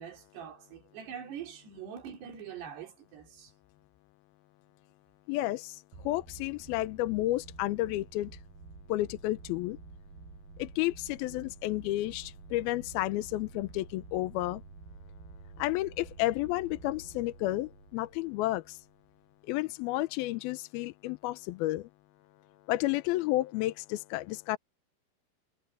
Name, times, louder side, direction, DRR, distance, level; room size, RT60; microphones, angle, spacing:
voice 1, 0.0-3.5, right 8 dB, 85° right, 5.0 m, -44 dB
voice 2, 5.3-8.3 8.9-9.8 10.6-14.6 15.6-18.8 19.5-21.9 22.7-24.6, left 17 dB, 80° left, 2.4 m, -31 dB
sound 1, 5.9-19.2, right 4 dB, 65° right, 9.3 m, -50 dB
omnidirectional pair, 4.6 m